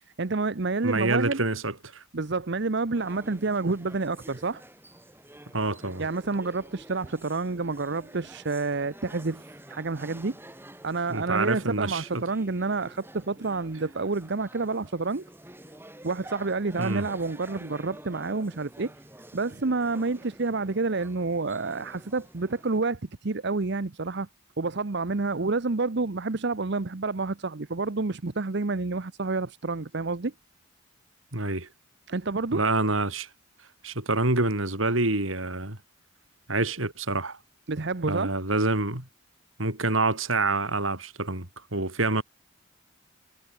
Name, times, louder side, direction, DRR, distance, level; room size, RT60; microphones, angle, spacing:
voice 1, 0.2-1.4 2.1-4.6 6.0-10.4 10.8-15.2 16.0-18.9 19.3-24.3 24.6-30.3 32.1-32.6 37.7-38.3, right 3 dB, 60° right, 0.9 m, -29 dB
voice 2, 0.8-2.0 5.5-6.1 11.1-12.2 16.8-17.1 31.3-31.7 32.5-33.3 33.8-35.8 36.5-37.4 38.1-39.1 39.6-42.2, right 2 dB, 80° right, 5.1 m, -27 dB
sound 1, 2.9-22.8, right 1 dB, 10° right, 5.2 m, -49 dB
head